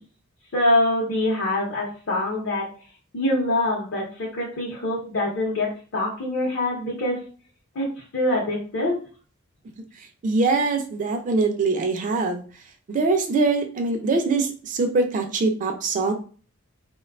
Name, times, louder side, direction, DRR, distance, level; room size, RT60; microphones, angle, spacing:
voice 1, 0.5-2.7 3.1-5.7 5.9-7.2 7.7-7.9 8.1-9.0, left 1 dB, 60° left, -4 dB, 0.6 m, -24 dB
voice 2, 10.0-12.4 12.9-16.1, right 3 dB, 35° right, 4 dB, 0.3 m, -23 dB
2.5 x 2.2 x 2.3 m, 0.39 s
head